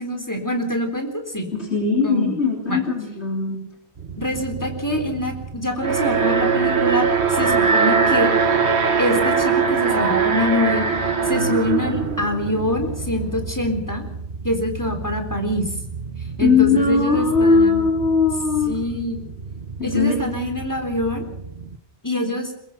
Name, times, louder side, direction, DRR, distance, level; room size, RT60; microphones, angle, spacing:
voice 1, 0.0-1.5 2.0-2.4 2.7-2.8 4.2-8.3 9.0-10.9 11.3-14.0 14.4-15.7 16.4-17.8 18.7-19.2 19.8-21.2 22.0-22.5, left 1 dB, 15° left, 4 dB, 3.8 m, -25 dB
voice 2, 1.5-3.6 16.4-18.8 19.8-20.3, left 4 dB, 85° left, 0 dB, 3.8 m, -19 dB
sound 1, 4.0-21.8, right 4 dB, 60° right, 1.4 m, -35 dB
Alarm, 5.8-12.9, right 5 dB, 85° right, 2.0 m, -20 dB
22.0 x 21.5 x 5.9 m, 0.79 s
omnidirectional pair, 1.1 m